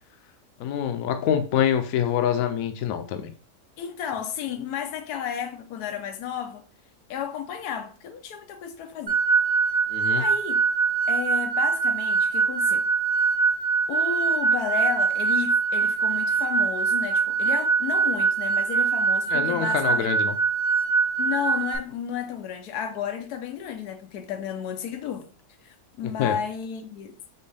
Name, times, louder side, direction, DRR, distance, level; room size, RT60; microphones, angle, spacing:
voice 1, 0.6-3.3 9.9-10.2 19.3-20.3 26.2-26.4, left 9 dB, 70° left, 1.0 m, -25 dB
voice 2, 3.8-6.6 7.1-9.2 10.1-10.6 11.1-12.9 13.9-20.1 21.2-25.3 25.6-27.1, left 9 dB, 90° left, 1.2 m, -33 dB
sound 1, 9.1-21.8, right 5 dB, 55° right, 0.5 m, -23 dB
4.4 x 3.0 x 3.3 m
omnidirectional pair, 1.6 m